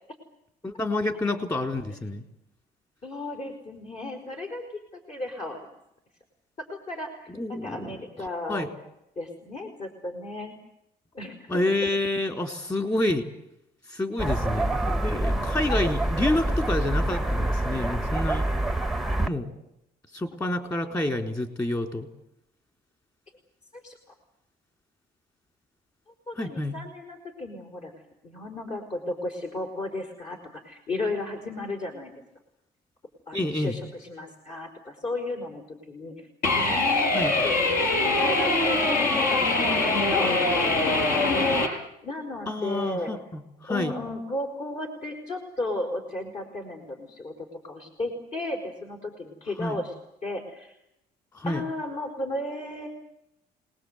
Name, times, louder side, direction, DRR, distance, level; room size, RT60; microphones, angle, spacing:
voice 1, 0.6-2.2 7.3-8.7 11.5-13.2 13.9-18.5 19.2-19.5 20.1-22.1 26.4-26.8 33.3-33.8 37.1-37.3 42.5-44.0 49.6-49.8 51.3-51.6, left 1 dB, 20° left, 5 dB, 4.0 m, -28 dB
voice 2, 3.0-4.6 4.9-5.7 6.7-8.6 9.1-10.5 11.1-11.6 15.1-15.4 23.7-24.0 26.3-27.9 28.2-32.1 33.3-36.3 36.5-41.0 41.3-43.1 43.7-49.9 50.2-50.7 51.4-52.9, left 2 dB, 45° left, 2 dB, 5.0 m, -34 dB
city night with dogs barking from distance, 14.2-19.3, right 1 dB, ahead, 1.1 m, -26 dB
sound 1, 36.4-41.7, left 2 dB, 60° left, 6.9 m, -23 dB
26.5 x 20.0 x 8.2 m, 0.82 s
cardioid pair, 110°, 17 cm